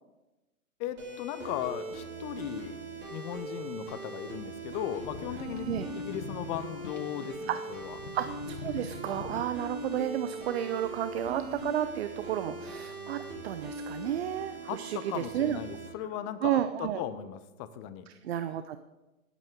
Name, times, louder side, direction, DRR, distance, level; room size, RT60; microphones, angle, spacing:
voice 1, 0.8-2.8 3.1-8.0 14.7-18.1, left 11 dB, 25° left, 12 dB, 0.7 m, -37 dB
sound 1, 1.0-15.9, right 3 dB, 25° right, 3.2 m, -41 dB
sound 2, 5.0-9.9 10.5-10.6, left 7 dB, 60° left, 0.9 m, -44 dB
voice 2, 8.1-15.6 16.4-17.0 18.2-18.8, right 11 dB, 45° right, 11 dB, 0.6 m, -32 dB
18.0 x 8.3 x 3.7 m, 1.1 s
figure-of-eight pair, 120°, 43 cm